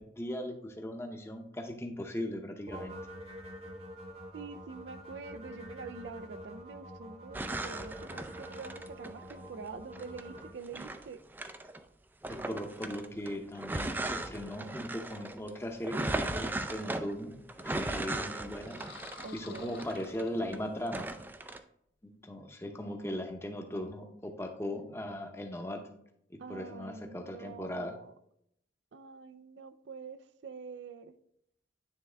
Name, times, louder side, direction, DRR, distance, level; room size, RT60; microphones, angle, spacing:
voice 1, 0.0-2.9 12.3-17.3 17.6-18.8 19.3-21.1 22.0-25.8 26.3-28.0, left 1 dB, 15° left, 4 dB, 0.7 m, -38 dB
sound 1, 2.7-10.5, equal, 35° right, 0.9 m, -46 dB
voice 2, 4.3-11.2 19.2-19.8 26.4-28.1 28.9-31.1, right 5 dB, 80° right, 11 dB, 0.4 m, -46 dB
sound 2, 7.3-9.4 9.9-11.8 12.2-20.6 20.9-21.6, right 2 dB, 10° right, 0.3 m, -37 dB
sound 3, 18.6-20.9, left 5 dB, 60° left, 0.6 m, -51 dB
9.3 x 3.5 x 3.3 m, 0.73 s
head